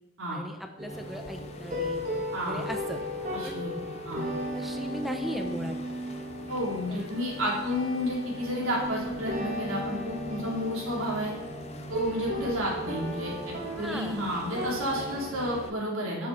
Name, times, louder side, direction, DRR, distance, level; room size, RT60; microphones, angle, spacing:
voice 1, 0.3-2.0 2.4-3.0 3.4-3.7 4.5-5.9 6.9-7.2 12.4-12.5 13.7-14.2, equal, ahead, 4 dB, 0.9 m, -38 dB
sound 1, 0.8-15.6, equal, 35° right, 1.7 m, -36 dB
sound 2, 0.9-15.7, left 1 dB, 30° left, 0.8 m, -45 dB
voice 2, 2.3-2.6 3.3-4.2 6.5-11.3 11.9-16.3, equal, 70° right, -4 dB, 3.8 m, -31 dB
12.5 x 6.9 x 4.4 m, 0.96 s
head